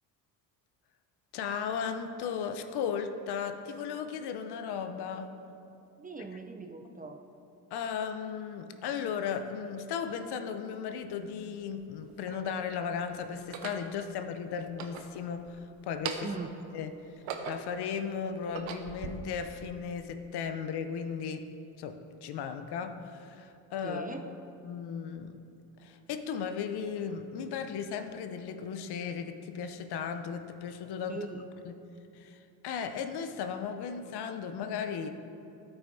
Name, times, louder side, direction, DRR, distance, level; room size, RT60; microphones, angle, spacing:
voice 1, 1.3-5.3 7.7-16.3 16.7-16.9 17.5-21.5 21.8-24.1 24.6-25.4 25.8-31.3 31.6-31.8 32.1-35.1, left 7 dB, 55° left, 8 dB, 0.7 m, -36 dB
voice 2, 6.0-7.2 16.2-16.5 23.8-24.3 31.1-31.4, right 4 dB, 20° right, 4 dB, 0.5 m, -40 dB
sound 1, 10.9-11.0 11.8-12.6 13.4-13.9 14.6-15.6 15.9-16.5 17.0-17.8 18.3-19.1, right 7 dB, 65° right, 0.8 m, -40 dB
13.0 x 5.8 x 2.7 m, 2.7 s
hypercardioid pair, 60°, 48 cm